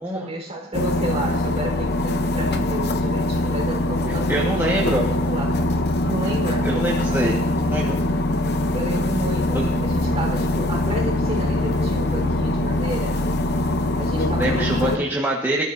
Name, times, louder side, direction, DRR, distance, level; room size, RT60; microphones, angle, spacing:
voice 1, 0.1-5.6 6.1-6.7 7.1-7.5 8.7-13.2 14.0-15.1, right 1 dB, 30° right, 0 dB, 4.2 m, -31 dB
atmos boat, 0.7-15.0, left 1 dB, 55° left, 0.8 m, -22 dB
voice 2, 4.3-5.1 6.6-8.0 9.5-9.7 14.4-15.6, right 1 dB, 10° right, -4 dB, 1.5 m, -24 dB
26.5 x 13.5 x 2.7 m, 0.82 s
head